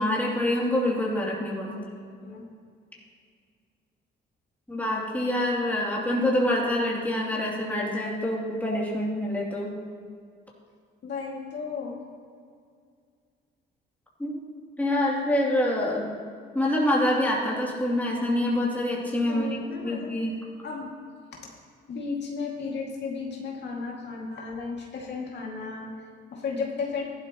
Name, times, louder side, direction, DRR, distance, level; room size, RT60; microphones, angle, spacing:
voice 1, 0.0-1.7 4.7-9.7 14.2-14.4 14.8-16.1 16.5-19.6 19.8-20.3, left 1 dB, 10° left, -4 dB, 2.9 m, -26 dB
voice 2, 11.0-12.0 19.3-20.2 20.6-20.9 21.3-21.5 21.9-27.0, left 4 dB, 60° left, -2 dB, 2.3 m, -34 dB
15.5 x 11.5 x 3.0 m, 2.2 s
cardioid pair, 90°, 20 cm